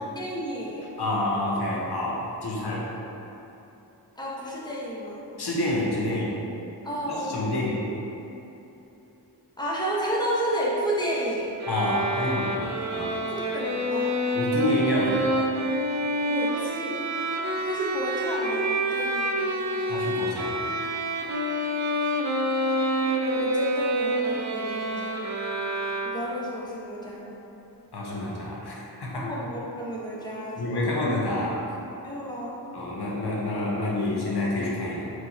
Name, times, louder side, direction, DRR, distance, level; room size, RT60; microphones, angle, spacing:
voice 1, 0.1-0.9 4.2-5.2 6.8-7.5 9.6-11.5 13.3-14.2 16.2-17.1 17.4-19.6 22.0-22.1 23.3-25.2 26.0-27.2 29.1-30.9 32.0-32.6, equal, 10° left, -6 dB, 0.8 m, -31 dB
voice 2, 1.0-2.9 5.4-6.3 7.3-7.9 11.7-13.2 14.3-15.4 19.8-20.7 27.9-29.3 30.6-31.6 32.7-35.1, left 1 dB, 65° left, -4 dB, 0.7 m, -28 dB
sound 1, 11.6-26.5, right 1 dB, 45° right, 0.4 m, -27 dB
4.4 x 2.2 x 3.9 m, 3.0 s
wide cardioid pair, 45°, 42 cm